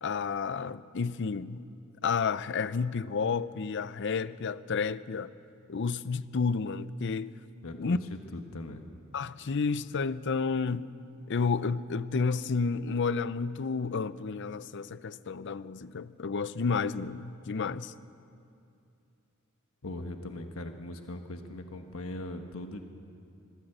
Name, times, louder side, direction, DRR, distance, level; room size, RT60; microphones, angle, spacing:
voice 1, 0.0-1.7 2.0-5.3 5.7-7.3 7.8-8.0 9.1-10.9 11.3-17.9, left 5 dB, 60° left, 0.6 m, -31 dB
voice 2, 7.6-8.0 8.3-8.9 19.8-22.8, left 1 dB, 75° left, 1.3 m, -40 dB
22.0 x 15.0 x 8.0 m
head